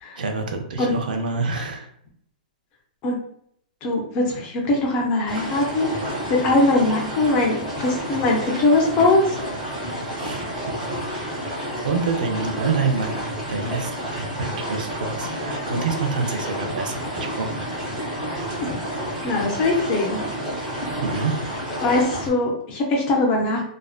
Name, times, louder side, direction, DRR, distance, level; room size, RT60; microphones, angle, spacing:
voice 1, 0.2-1.9 10.2-10.4 11.8-17.6 20.9-21.6, right 4 dB, 75° right, 5 dB, 0.5 m, -27 dB
voice 2, 3.8-5.9 6.4-9.4 18.6-18.7 19.2-20.2 21.8-23.6, left 2 dB, 20° left, 0 dB, 0.4 m, -21 dB
sound 1, 5.3-22.3, equal, 10° right, 0.7 m, -30 dB
2.4 x 2.1 x 2.3 m, 0.67 s
hypercardioid pair, 175°, 5 cm